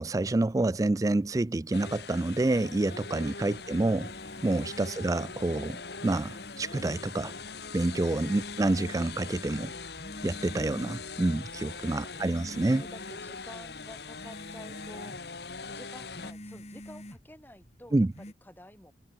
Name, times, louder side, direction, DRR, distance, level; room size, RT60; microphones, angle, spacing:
voice 1, 0.0-4.1 4.4-7.3 7.7-9.7 10.2-12.8 17.9-18.1, right 2 dB, 20° right, 0.3 m, -28 dB
sound 1, 1.7-16.3, left 4 dB, 60° left, 1.8 m, -42 dB
sound 2, 2.3-18.3, left 1 dB, 35° left, 6.6 m, -49 dB
voice 2, 11.5-15.3 15.7-18.9, left 1 dB, 10° left, 4.1 m, -51 dB
head